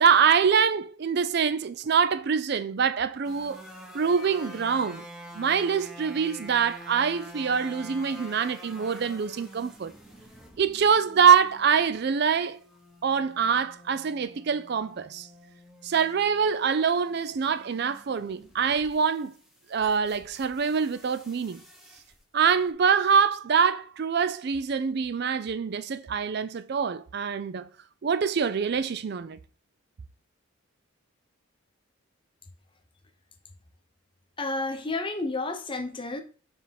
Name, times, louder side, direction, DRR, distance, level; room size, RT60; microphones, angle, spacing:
voice 1, 0.0-3.6 3.9-5.0 5.4-9.9 10.6-12.6 13.0-15.3 15.8-19.3 19.7-21.6 22.3-27.7 28.0-29.4, right 6 dB, 50° right, 0.4 m, -24 dB
sound 1, 3.2-22.2 22.4-22.7, equal, ahead, 1.1 m, -48 dB
voice 2, 34.4-36.2, left 2 dB, 25° left, 0.8 m, -31 dB
7.1 x 3.4 x 5.8 m
head